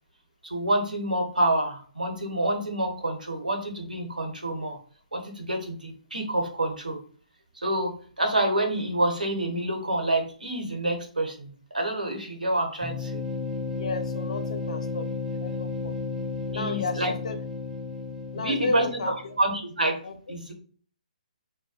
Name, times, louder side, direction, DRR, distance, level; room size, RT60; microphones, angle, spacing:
voice 1, 0.4-4.8 5.1-7.0 7.6-13.2 16.5-17.1 18.3-18.9 19.4-20.0 20.3-20.5, right 1 dB, 85° right, 3 dB, 0.8 m, -27 dB
sound 1, 12.8-19.5, left 4 dB, 10° right, 0.4 m, -33 dB
voice 2, 13.7-15.9 16.5-17.4 18.3-19.3 20.0-20.2, left 3 dB, 55° left, 8 dB, 0.4 m, -33 dB
2.3 x 2.2 x 2.6 m, 0.43 s
figure-of-eight pair, 135°, 4 cm